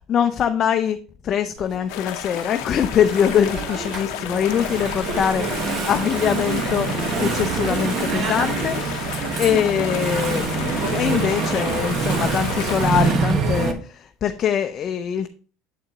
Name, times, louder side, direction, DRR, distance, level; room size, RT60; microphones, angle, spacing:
voice 1, 0.1-1.0 1.2-5.4 5.9-15.3, left 8 dB, 40° left, 0.5 m, -23 dB
Engine / Mechanisms, 1.6-13.7, right 5 dB, 45° right, 1.1 m, -26 dB
sound 1, 1.9-13.1, left 13 dB, 75° left, 0.7 m, -32 dB
7.5 x 4.4 x 3.9 m
supercardioid pair, 115°, 0 cm